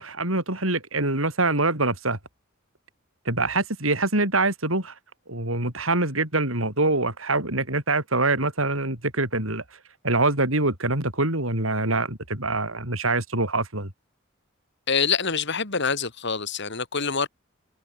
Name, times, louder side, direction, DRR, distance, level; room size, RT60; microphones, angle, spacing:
voice 1, 0.0-2.2 3.3-4.9 5.3-9.6 10.0-13.9, right 2 dB, 90° right, 7.7 m, -24 dB
voice 2, 14.9-17.3, left 5 dB, 60° left, 3.5 m, -25 dB
head